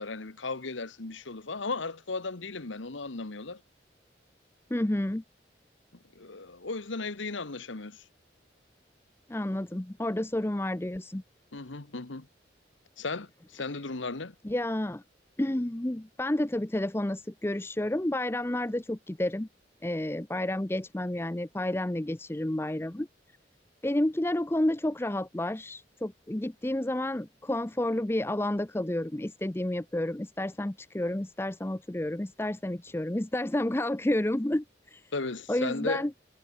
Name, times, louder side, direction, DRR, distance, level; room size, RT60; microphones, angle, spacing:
voice 1, 0.0-3.6 6.1-8.0 11.5-12.3 13.0-14.3 35.1-36.0, left 3 dB, 85° left, 1.4 m, -36 dB
voice 2, 4.7-5.2 9.3-11.2 14.4-15.0 15.4-19.5 19.8-23.1 23.8-34.6 34.9-35.0 35.5-36.1, left 1 dB, 15° left, 0.5 m, -30 dB
head